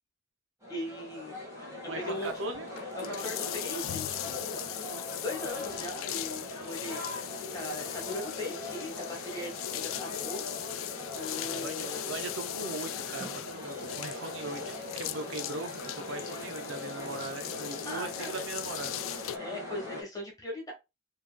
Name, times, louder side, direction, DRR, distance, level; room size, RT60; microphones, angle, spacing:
sound 1, 0.6-20.0, left 1 dB, 15° right, 1.7 m, -41 dB
voice 1, 0.7-1.3 1.9-2.3 3.0-4.6 5.2-7.0 7.5-10.4 11.1-12.1 17.8-18.4 19.4-20.7, left 1 dB, 20° left, 1.4 m, -39 dB
voice 2, 1.9-2.7 11.3-19.0, right 3 dB, 65° right, 0.5 m, -40 dB
sound 2, 2.1-19.4, left 13 dB, 75° left, 0.3 m, -39 dB
4.5 x 3.0 x 2.2 m
head